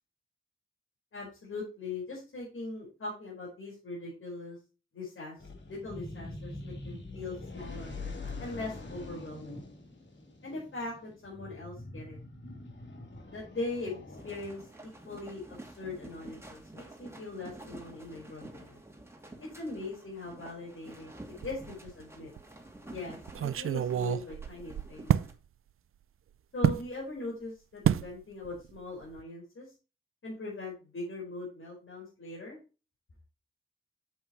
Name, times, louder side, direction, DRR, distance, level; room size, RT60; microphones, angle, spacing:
voice 1, 1.1-4.6 4.9-5.4 5.7-7.9 8.4-9.7 10.4-12.2 13.3-18.8 19.4-22.3 22.9-25.1 26.5-29.7 30.2-32.6, left 2 dB, 75° left, -4 dB, 4.9 m, -41 dB
sound 1, 5.4-14.9, left 2 dB, 60° left, 3.2 m, -44 dB
sound 2, 14.1-25.3, right 1 dB, 10° right, 2.8 m, -50 dB
sound 3, 21.4-22.0 22.4-22.5 23.3-25.3 26.6-26.9 27.8-28.1 28.4-28.8 29.0-29.2, right 9 dB, 90° right, 0.4 m, -29 dB
8.3 x 8.2 x 3.1 m, 0.32 s
cardioid pair, 60°, 21 cm